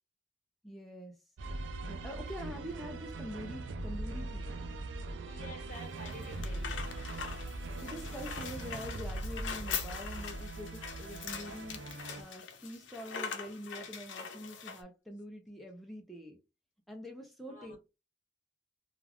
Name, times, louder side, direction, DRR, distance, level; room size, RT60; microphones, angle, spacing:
voice 1, 0.6-1.2 1.9-4.6 7.8-16.4 16.9-17.8, equal, ahead, 0.4 m, -45 dB
sound 1, 1.4-12.2, right 2 dB, 90° right, 0.5 m, -41 dB
voice 2, 5.3-6.9 17.5-17.8, left 1 dB, 45° left, 0.8 m, -49 dB
sound 2, 5.7-14.8, left 6 dB, 85° left, 0.6 m, -42 dB
2.4 x 2.3 x 3.3 m
head